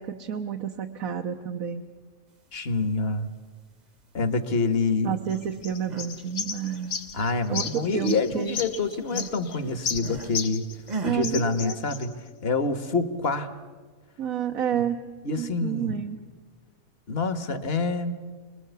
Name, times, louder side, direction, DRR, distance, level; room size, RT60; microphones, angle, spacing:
voice 1, 0.0-1.8 5.0-6.9 7.5-8.6 11.0-11.7 14.2-15.0 15.4-16.2, right 9 dB, 80° right, 3 dB, 1.5 m, -30 dB
voice 2, 2.5-3.3 4.1-5.2 7.1-10.7 11.0-13.5 14.7-14.8 15.2-16.0 17.1-18.1, left 3 dB, 45° left, 10 dB, 1.5 m, -27 dB
sound 1, 5.3-10.9 11.2-12.1, left 6 dB, 90° left, 1.6 m, -34 dB
sound 2, 5.6-6.2 6.5-7.9 8.2-10.4 10.9-11.3, right 3 dB, 35° right, 1.1 m, -39 dB
27.5 x 21.0 x 8.2 m, 1.4 s
omnidirectional pair, 1.5 m